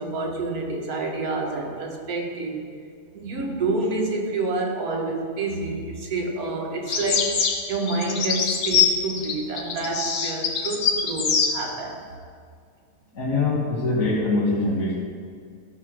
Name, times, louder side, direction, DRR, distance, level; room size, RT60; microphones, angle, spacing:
voice 1, 0.0-2.6 3.1-7.3 7.7-12.0, right 2 dB, 65° right, 1 dB, 1.7 m, -28 dB
sound 1, 6.9-11.5, left 6 dB, 90° left, 1.6 m, -23 dB
voice 2, 13.1-14.9, left 2 dB, 55° left, -8 dB, 2.0 m, -23 dB
13.5 x 5.6 x 6.2 m, 2.1 s
omnidirectional pair, 1.7 m